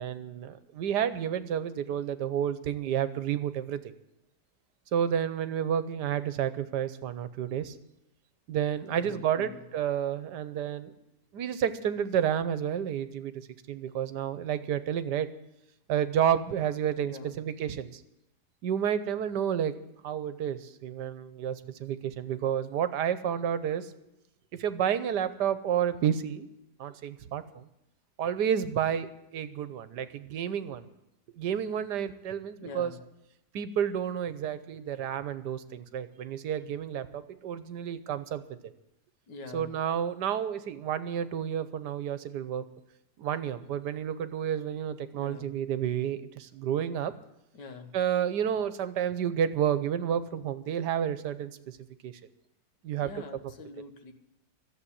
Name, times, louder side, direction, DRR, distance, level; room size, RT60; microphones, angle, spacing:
voice 1, 0.0-3.8 4.9-7.7 8.5-10.9 11.3-15.3 15.9-18.0 18.6-19.7 20.0-23.9 24.6-26.5 26.8-27.7 28.2-29.1 29.3-30.9 31.4-32.9 33.5-38.4 39.5-42.6 43.2-47.1 47.9-51.8 52.0-52.1 52.8-53.1, right 9 dB, 80° right, 13 dB, 1.5 m, -30 dB
voice 2, 8.9-9.6 17.0-17.4 32.6-33.0 39.3-39.7 45.1-45.5 47.5-48.0 53.0-54.1, left 4 dB, 90° left, 7 dB, 2.1 m, -44 dB
13.5 x 7.7 x 9.9 m, 0.87 s
omnidirectional pair, 1.8 m